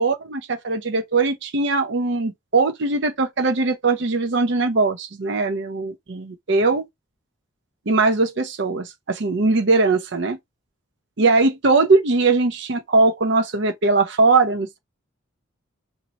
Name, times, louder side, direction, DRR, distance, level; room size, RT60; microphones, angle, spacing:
voice 1, 0.0-6.8 7.9-10.4 11.2-14.8, right 3 dB, 60° right, 0.6 m, -20 dB
2.9 x 2.6 x 4.1 m
head